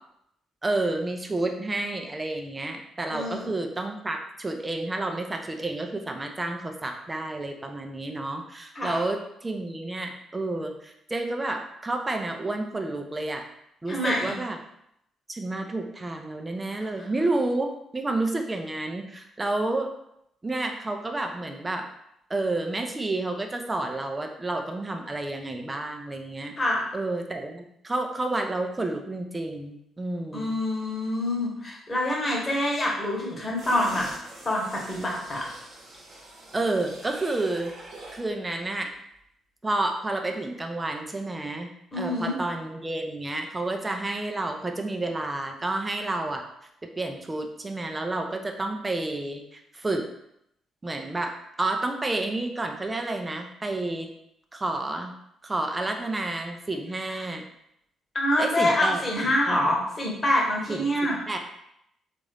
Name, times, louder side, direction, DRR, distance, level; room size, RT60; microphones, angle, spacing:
voice 1, 0.6-13.4 13.8-14.6 15.3-19.9 20.4-21.9 22.3-26.5 26.9-30.5 36.5-37.7 38.1-38.9 39.6-41.7 41.9-46.5 47.0-50.1 50.8-54.1 54.5-55.1 55.4-57.4 58.4-59.0 59.5-59.7 60.7-60.9 61.3-61.4, right 2 dB, 20° right, 4 dB, 0.5 m, -30 dB
voice 2, 3.1-3.5 8.7-9.0 13.9-14.3 16.7-17.1 26.6-26.8 30.3-34.1 34.4-35.4 41.9-42.4 57.1-57.3 58.1-61.2, left 1 dB, 30° left, -2 dB, 1.2 m, -26 dB
sound 1, 33.6-38.3 38.7-38.8, right 1 dB, 45° right, 1.0 m, -44 dB
3.5 x 2.5 x 3.3 m, 0.77 s
figure-of-eight pair, 40°, 0 cm